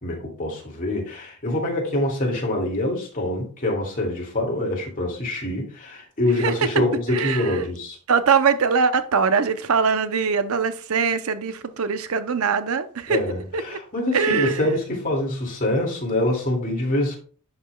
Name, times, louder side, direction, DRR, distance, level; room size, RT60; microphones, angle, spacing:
voice 1, 0.0-8.0 13.1-17.2, left 1 dB, 40° left, 2.3 m, -25 dB
voice 2, 6.4-7.7 8.1-13.2 13.5-13.6 14.1-14.6, right 5 dB, 75° right, 0.6 m, -22 dB
11.0 x 5.2 x 2.3 m
head